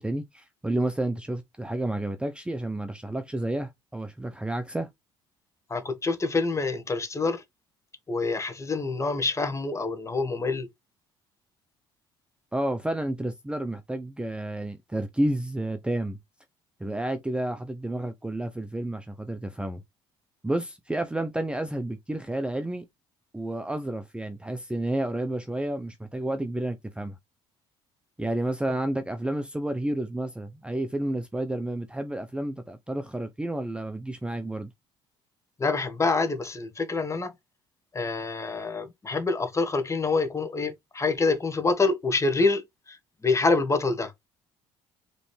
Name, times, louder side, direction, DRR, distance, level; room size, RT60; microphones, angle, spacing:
voice 1, 0.0-4.9 12.5-16.2 16.8-19.8 20.4-22.9 23.3-27.1 28.2-34.7, right 1 dB, 10° right, 0.6 m, -30 dB
voice 2, 5.7-7.4 8.1-10.7 35.6-37.3 37.9-42.6 42.9-43.0 43.2-44.1, left 3 dB, 25° left, 1.4 m, -26 dB
5.0 x 3.2 x 3.3 m
supercardioid pair, 80°, 12 cm